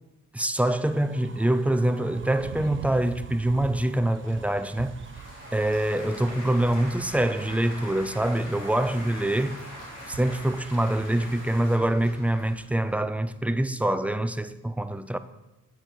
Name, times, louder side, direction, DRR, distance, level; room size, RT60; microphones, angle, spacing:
voice 1, 0.3-5.0 5.5-9.6 10.1-15.2, right 1 dB, 5° right, 0.4 m, -25 dB
sound 1, 0.7-11.8, right 5 dB, 35° right, 0.7 m, -49 dB
sound 2, 2.2-12.4, right 8 dB, 75° right, 0.6 m, -44 dB
Applause / Crowd, 4.2-13.0, left 1 dB, 85° left, 3.1 m, -43 dB
8.8 x 7.7 x 4.4 m
cardioid pair, 100°, 33 cm